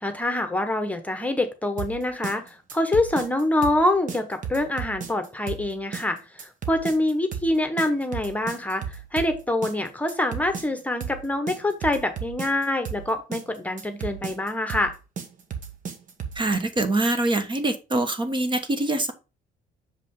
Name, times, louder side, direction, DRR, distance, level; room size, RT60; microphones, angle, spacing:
voice 1, 0.0-14.9, left 1 dB, 10° left, 7 dB, 1.2 m, -25 dB
sound 1, 1.8-16.5, right 7 dB, 50° right, 1.4 m, -35 dB
voice 2, 16.3-19.1, right 2 dB, 30° right, 8 dB, 1.2 m, -24 dB
6.6 x 5.0 x 3.8 m, 0.30 s
cardioid pair, 110°, 17 cm